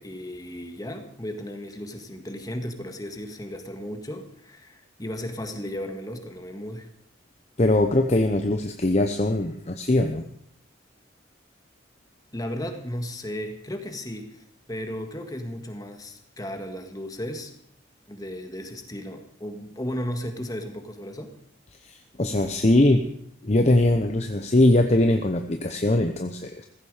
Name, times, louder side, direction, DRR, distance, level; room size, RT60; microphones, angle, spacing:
voice 1, 0.0-6.9 12.3-17.5 18.1-21.3, equal, 20° left, 6 dB, 1.9 m, -35 dB
voice 2, 7.6-10.2 21.8-23.0 23.4-26.7, left 1 dB, 35° left, 6 dB, 0.9 m, -21 dB
16.0 x 14.5 x 5.0 m, 0.69 s
head